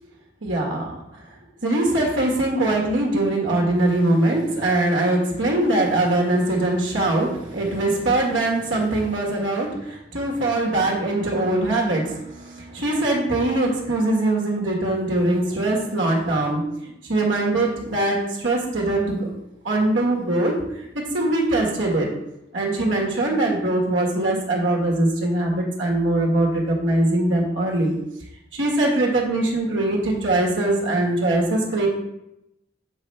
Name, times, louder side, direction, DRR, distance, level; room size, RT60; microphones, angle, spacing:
voice 1, 0.4-1.0 1.6-19.3 19.6-22.1 22.5-28.0 28.5-31.9, right 2 dB, 85° right, -2 dB, 1.6 m, -22 dB
7.5 x 3.3 x 5.5 m, 0.84 s
head